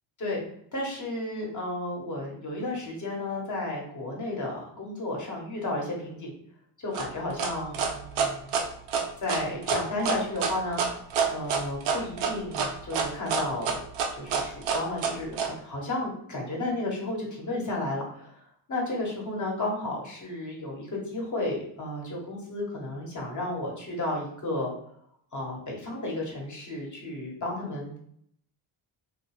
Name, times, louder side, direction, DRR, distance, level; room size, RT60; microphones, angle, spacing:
voice 1, 0.7-6.3 6.8-8.6 9.2-10.8 11.3-13.8 14.1-24.7 25.3-28.0, left 2 dB, 40° left, -1 dB, 1.1 m, -33 dB
sound 1, 6.9-15.5, right 6 dB, 80° right, 0.6 m, -27 dB
2.3 x 2.3 x 3.1 m, 0.68 s
cardioid pair, 75°, 48 cm